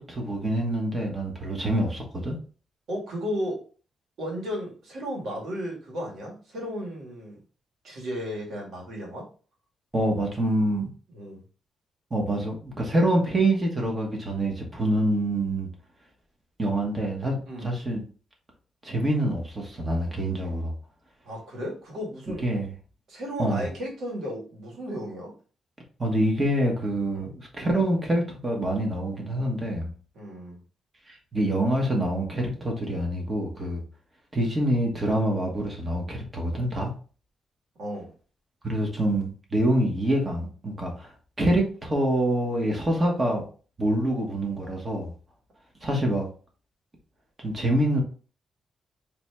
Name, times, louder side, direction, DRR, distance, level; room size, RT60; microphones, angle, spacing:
voice 1, 0.0-2.4 9.9-10.9 12.1-15.7 16.6-18.0 18.8-20.7 22.4-22.7 23.4-23.7 26.0-29.9 31.1-33.8 34.3-36.9 38.6-41.1 41.4-43.4 43.8-45.1 45.8-46.3 47.4-48.0, right 1 dB, 25° right, 1 dB, 1.3 m, -26 dB
voice 2, 2.9-3.6 4.2-7.4 7.8-9.2 11.1-11.4 17.5-17.7 21.2-22.5 23.1-25.3 27.1-27.3 30.1-30.6 37.8-38.1, equal, 75° right, -2 dB, 1.9 m, -34 dB
4.0 x 3.0 x 3.4 m, 0.38 s
cardioid pair, 140°, 0 cm